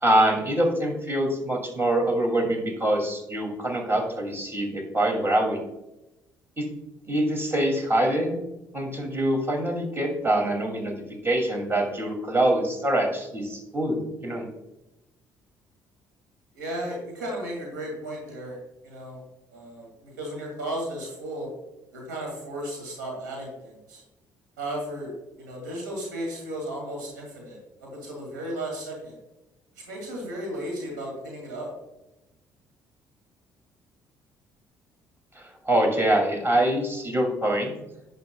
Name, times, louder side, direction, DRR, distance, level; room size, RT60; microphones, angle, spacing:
voice 1, 0.0-5.6 6.6-6.7 7.1-8.4 8.7-14.5 35.4-37.7, right 1 dB, 25° right, 2 dB, 2.7 m, -24 dB
voice 2, 16.5-18.6 18.8-19.2 19.5-21.5 21.9-24.0 24.6-29.2 29.8-31.7, right 1 dB, 90° right, -1 dB, 2.4 m, -35 dB
11.0 x 8.2 x 2.3 m, 0.94 s
hypercardioid pair, 55°, 10 cm